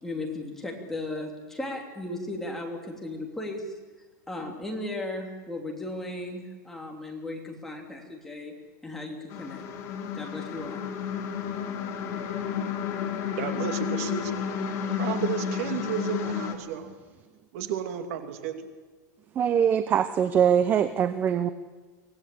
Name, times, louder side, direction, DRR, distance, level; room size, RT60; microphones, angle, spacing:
voice 1, 0.0-3.7 4.3-8.5 8.8-9.6 10.1-10.8, left 2 dB, 5° left, 0 dB, 3.1 m, -36 dB
sound 1, 9.3-16.6, left 8 dB, 30° left, 2.8 m, -31 dB
voice 2, 13.4-14.4 14.9-16.9 17.5-18.7, right 9 dB, 50° right, 6 dB, 2.6 m, -32 dB
voice 3, 19.3-21.5, right 8 dB, 20° right, 11 dB, 0.7 m, -23 dB
25.0 x 17.5 x 8.6 m, 1.4 s
supercardioid pair, 165°, 10 cm